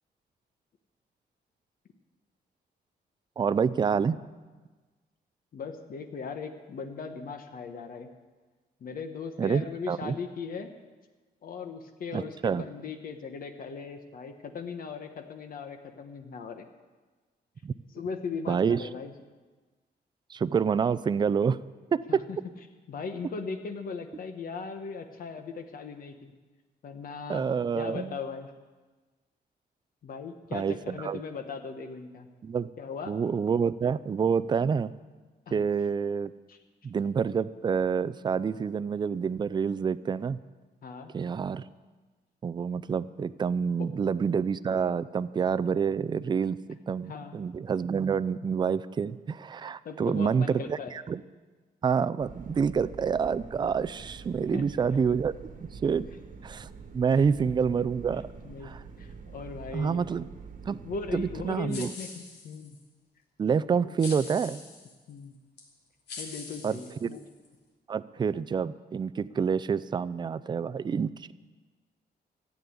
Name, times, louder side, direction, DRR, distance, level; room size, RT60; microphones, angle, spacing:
voice 1, 3.4-4.2 9.4-10.1 12.1-12.6 17.6-17.7 18.5-18.8 20.3-21.6 21.9-22.2 27.3-28.2 30.5-31.2 32.4-32.7 33.1-34.9 35.5-36.3 36.8-40.4 41.1-41.7 42.4-51.2 51.8-55.3 55.7-56.1 56.4-56.7 56.9-58.2 58.6-58.8 59.7-60.3 60.7-60.8 61.1-61.9 63.4-64.6 66.6-67.1 67.9-71.3, right 6 dB, 25° right, 16 dB, 0.4 m, -27 dB
voice 2, 5.5-8.1 8.8-10.7 11.4-16.7 17.9-19.1 22.1-22.4 22.9-26.3 26.8-27.4 27.8-28.5 30.0-32.3 32.8-33.1 35.5-35.6 36.5-36.6 40.8-41.1 43.8-43.9 47.1-47.4 49.8-50.9 54.5-54.6 57.2-57.3 58.4-58.7 59.0-60.0 60.8-62.8 63.8-63.9 65.1-65.3 66.2-67.2, left 5 dB, 55° left, 6 dB, 1.2 m, -38 dB
sound 1, 52.2-61.5, right 5 dB, 50° right, 1.3 m, -45 dB
sound 2, 61.7-62.8 64.0-64.9 65.6-65.7 66.1-67.5, left 4 dB, 80° left, 3.1 m, -43 dB
14.5 x 8.5 x 9.5 m, 1.3 s
wide cardioid pair, 165°, 17 cm